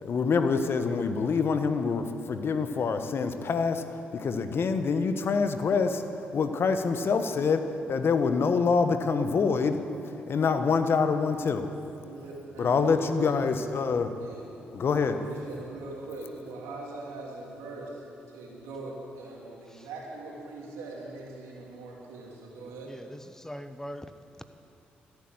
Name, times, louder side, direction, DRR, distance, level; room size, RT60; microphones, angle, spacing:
voice 1, 0.0-6.0 6.3-7.6 7.9-11.7 12.6-14.1 14.7-15.2, left 5 dB, 55° left, 9 dB, 1.1 m, -26 dB
voice 2, 12.0-13.4 14.2-14.5 15.0-22.9, right 2 dB, 80° right, -2 dB, 3.0 m, -41 dB
voice 3, 22.9-24.0 24.4-24.5, equal, 10° left, 10 dB, 1.0 m, -41 dB
14.0 x 11.0 x 7.8 m, 2.6 s
hypercardioid pair, 45°, 5 cm